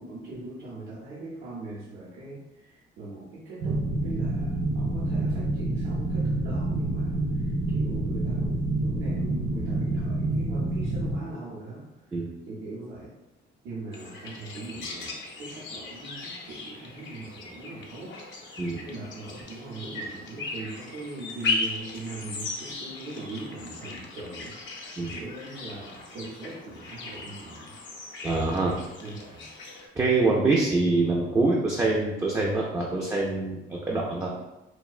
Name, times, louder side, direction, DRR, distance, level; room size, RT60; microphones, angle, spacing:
voice 1, 0.0-11.8 12.1-12.2 12.5-13.1 13.6-27.7 29.0-29.5, right 2 dB, 90° right, -9 dB, 0.7 m, -40 dB
sound 1, 3.6-11.2, right 2 dB, 65° right, 0.9 m, -27 dB
sound 2, 13.9-29.9, left 3 dB, 70° left, 0.5 m, -37 dB
voice 2, 28.2-28.7 30.0-34.3, right 3 dB, 15° right, -3 dB, 0.3 m, -25 dB
2.5 x 2.1 x 2.3 m, 0.98 s
cardioid pair, 90°, 20 cm